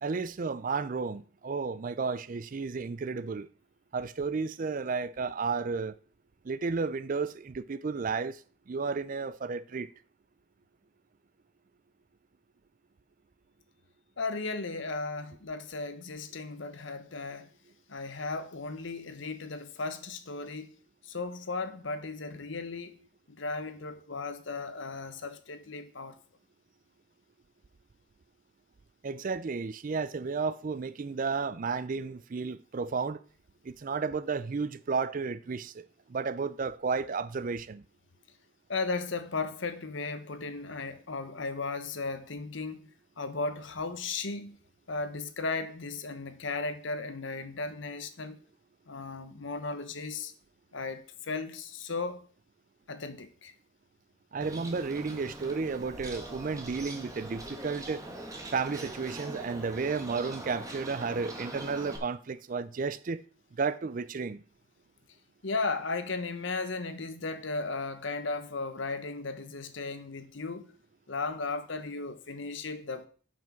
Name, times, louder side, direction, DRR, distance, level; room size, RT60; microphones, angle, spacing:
voice 1, 0.0-3.5 3.9-5.9 6.5-8.4 8.7-9.9 29.0-33.2 33.6-35.8 36.1-37.8 54.3-58.0 58.5-63.2 63.6-64.4, right 4 dB, 40° right, 0.4 m, -32 dB
voice 2, 14.2-17.5 17.9-20.7 21.0-23.0 23.3-26.2 38.7-42.8 43.2-44.6 44.9-48.4 48.9-50.3 50.7-52.2 52.9-53.5 65.4-70.7 71.1-73.1, left 3 dB, 65° left, 1.0 m, -36 dB
Bird, 54.4-62.0, right 1 dB, 15° right, 1.5 m, -42 dB
7.5 x 5.9 x 6.1 m
head